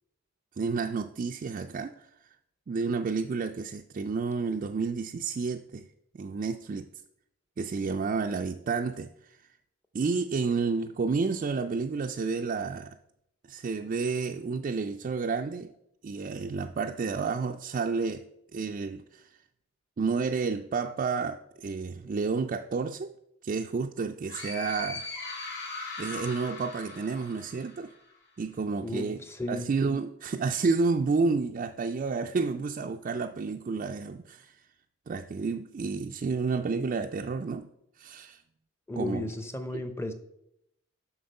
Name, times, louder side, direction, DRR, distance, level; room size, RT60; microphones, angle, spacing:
voice 1, 0.6-2.1 2.7-5.9 6.1-6.9 7.6-9.4 9.9-13.0 13.5-15.7 16.0-18.2 18.5-19.3 20.0-23.1 23.4-25.1 26.0-27.9 28.4-29.2 29.5-34.6 35.1-37.7 38.0-38.4 39.0-39.2, right 4 dB, 40° right, 4 dB, 0.3 m, -30 dB
sound 1, 24.3-28.0, left 3 dB, 55° left, 2.8 m, -39 dB
voice 2, 28.8-29.7 38.9-40.1, left 1 dB, 10° left, 9 dB, 0.6 m, -34 dB
7.8 x 6.0 x 5.3 m, 0.81 s
head